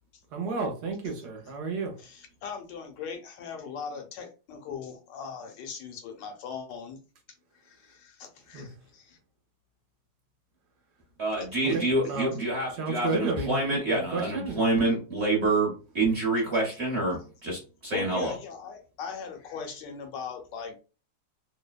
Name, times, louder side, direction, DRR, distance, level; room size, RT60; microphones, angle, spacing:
voice 1, 0.3-1.9 8.5-8.7 11.6-11.8 12.1-12.4 12.7-14.6, right 3 dB, 70° right, 2 dB, 1.2 m, -31 dB
voice 2, 2.0-7.0 7.5-9.2 17.9-20.8, left 6 dB, 75° left, 4 dB, 1.2 m, -39 dB
voice 3, 11.2-18.4, right 2 dB, 50° right, -2 dB, 0.8 m, -27 dB
3.2 x 2.1 x 2.2 m, 0.34 s
omnidirectional pair, 2.0 m